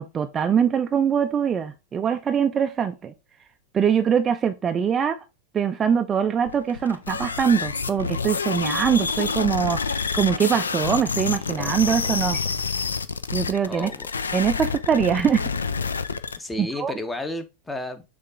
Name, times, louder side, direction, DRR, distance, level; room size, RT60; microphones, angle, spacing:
voice 1, 0.0-3.1 3.7-5.2 5.5-12.4 13.3-13.9 14.3-15.5 16.6-16.9, right 7 dB, 20° right, 0.3 m, -23 dB
sound 1, 6.5-16.4, left 5 dB, 75° left, 0.3 m, -28 dB
Telephone, 11.5-12.6, left 1 dB, 35° left, 2.2 m, -38 dB
voice 2, 13.6-14.1 16.4-18.0, left 2 dB, 10° left, 0.7 m, -32 dB
6.3 x 2.4 x 3.3 m
figure-of-eight pair, 90°, 0 cm